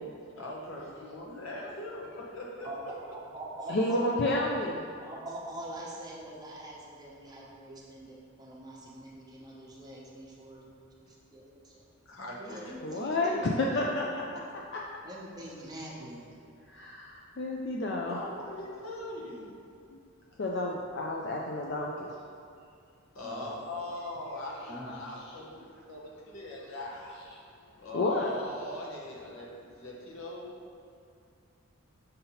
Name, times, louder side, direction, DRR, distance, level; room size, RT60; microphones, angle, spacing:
voice 1, 0.4-2.9 12.0-12.7 13.1-13.2 18.1-19.6 23.1-27.2 27.8-30.5, left 1 dB, 75° left, -3 dB, 1.1 m, -41 dB
voice 2, 3.1-4.5 5.0-10.7 11.0-11.9 12.4-14.5 15.0-16.2 23.2-23.5 24.7-24.9, right 1 dB, 20° right, -4 dB, 0.8 m, -43 dB
voice 3, 3.7-4.8 12.8-14.2 14.7-14.8 16.7-18.2 19.9-20.0 20.4-22.1 27.9-28.3, left 2 dB, 55° left, -2 dB, 0.4 m, -30 dB
6.6 x 2.8 x 5.6 m, 2.4 s
head